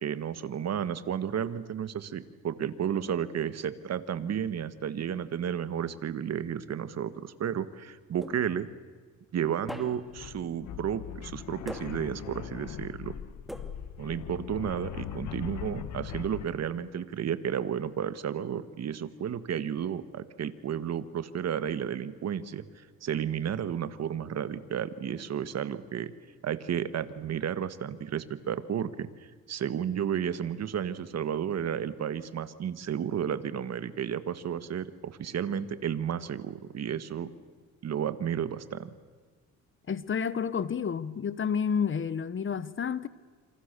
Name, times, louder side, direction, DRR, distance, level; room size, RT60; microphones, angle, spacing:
voice 1, 0.0-8.7 9.3-13.1 14.0-26.1 26.4-29.1 29.5-37.3 37.8-38.9, right 8 dB, 60° right, 1.7 m, -32 dB
sound 1, 8.2-8.8 9.7-10.3 11.7-12.3 13.5-14.1, equal, ahead, 2.4 m, -42 dB
sound 2, 9.6-9.7 10.1-16.5, left 10 dB, 75° left, 1.4 m, -40 dB
voice 2, 39.9-43.1, left 6 dB, 40° left, 1.2 m, -30 dB
27.5 x 27.0 x 6.9 m
cardioid pair, 90°, 30 cm